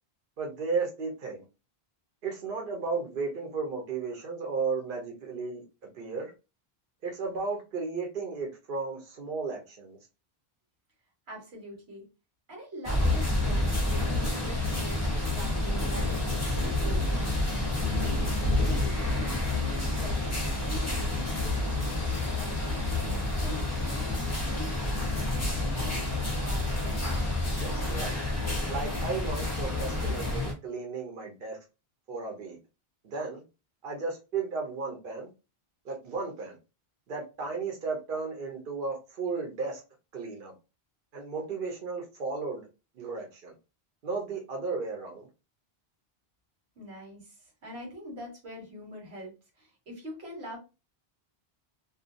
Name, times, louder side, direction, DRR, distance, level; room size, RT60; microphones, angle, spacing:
voice 1, 0.4-1.4 2.2-5.6 5.9-6.3 7.0-10.0 24.0-24.2 27.6-28.1 28.7-31.6 32.1-32.6 33.0-33.4 33.8-35.3 35.8-36.6 37.1-39.8 40.1-40.5 41.1-42.7 42.9-43.5 44.0-45.3, right 4 dB, 60° right, 1 dB, 0.9 m, -34 dB
voice 2, 11.3-12.1 12.5-17.2 17.8-18.3 18.6-20.2 20.6-22.9 23.4-25.2 25.5-26.7 46.7-50.6, equal, 85° right, -1 dB, 1.4 m, -44 dB
sound 1, 12.8-30.5, left 2 dB, 20° left, 0.6 m, -29 dB
2.5 x 2.3 x 2.5 m, 0.29 s
omnidirectional pair, 1.0 m